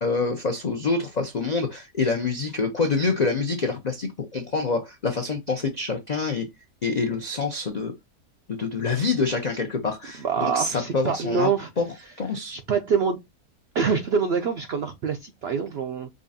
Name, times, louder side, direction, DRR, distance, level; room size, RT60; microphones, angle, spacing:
voice 1, 0.0-6.5 6.8-7.9 8.5-11.5 11.8-11.9 12.2-12.5, left 4 dB, 70° left, 0.4 m, -26 dB
voice 2, 10.2-11.7 12.5-13.2 13.7-16.1, right 6 dB, 75° right, 0.5 m, -25 dB
5.1 x 2.4 x 2.6 m
omnidirectional pair, 1.6 m